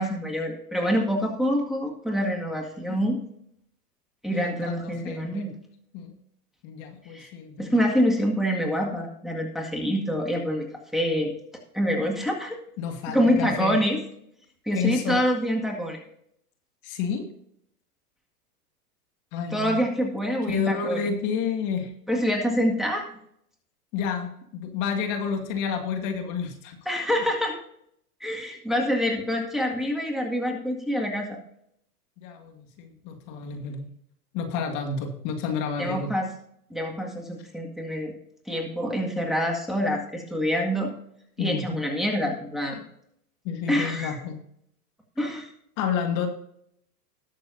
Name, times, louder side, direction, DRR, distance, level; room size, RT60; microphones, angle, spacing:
voice 1, 0.0-3.2 4.2-5.5 7.1-7.3 7.6-11.3 11.7-12.6 13.1-14.0 14.7-16.0 19.5-21.0 22.1-23.1 26.9-27.6 28.2-31.4 35.8-36.3 36.7-38.1 38.5-40.9 41.4-42.8 43.7-44.1 45.2-45.5, equal, ahead, 0 dB, 1.9 m, -26 dB
voice 2, 4.3-5.5 5.9-6.1 6.6-7.8 12.8-13.8 14.7-15.2 16.8-17.3 19.3-19.8 20.4-21.9 23.9-26.8 32.2-33.9 34.3-36.1 41.4-41.8 43.4-44.4 45.8-46.3, left 6 dB, 40° left, 5 dB, 2.0 m, -30 dB
20.0 x 6.7 x 2.7 m, 0.70 s
hypercardioid pair, 130°, 47 cm